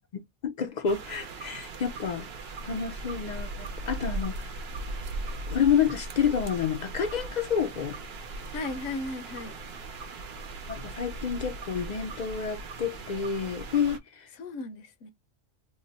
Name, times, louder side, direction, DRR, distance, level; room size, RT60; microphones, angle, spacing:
voice 1, 0.0-2.3 2.6-4.6 5.5-8.0 10.7-14.0, left 7 dB, 60° left, 0.4 m, -29 dB
sound 1, 0.9-14.0, right 2 dB, 60° right, 0.9 m, -38 dB
voice 2, 8.5-9.5 13.9-14.0 14.4-15.1, left 2 dB, 85° left, 1.0 m, -36 dB
3.0 x 2.1 x 3.9 m
omnidirectional pair, 1.2 m